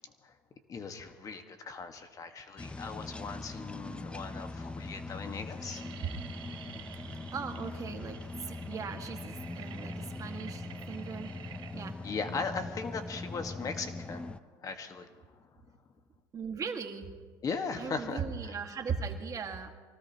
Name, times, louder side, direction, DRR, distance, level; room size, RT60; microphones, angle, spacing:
voice 1, 0.7-5.9 12.0-14.3 14.6-15.1 17.4-18.6, left 5 dB, 35° left, 6 dB, 1.5 m, -38 dB
sound 1, 2.6-14.4, left 2 dB, 10° left, 0.6 m, -41 dB
sound 2, 4.3-4.4 4.6-5.0 5.2-14.2, right 10 dB, 50° right, 1.0 m, -51 dB
voice 2, 7.3-11.3 11.7-12.0 16.3-17.1 17.8-19.7, right 6 dB, 35° right, 4 dB, 1.8 m, -38 dB
24.5 x 18.0 x 3.0 m, 1.4 s
supercardioid pair, 95°, 10 cm